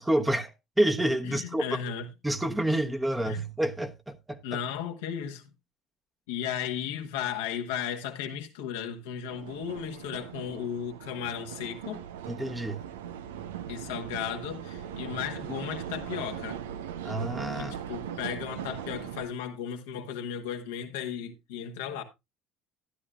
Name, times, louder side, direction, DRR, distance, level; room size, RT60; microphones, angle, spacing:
voice 1, 0.0-1.6 2.2-4.6 12.3-12.8 17.0-17.8, right 1 dB, 10° right, 1.1 m, -28 dB
voice 2, 1.2-2.1 3.2-3.4 4.4-5.5 6.3-12.1 13.7-16.6 17.6-22.0, left 8 dB, 75° left, 1.3 m, -35 dB
sound 1, 9.3-19.2, right 9 dB, 80° right, 0.6 m, -39 dB
13.0 x 11.0 x 2.4 m
hypercardioid pair, 65°, 0 cm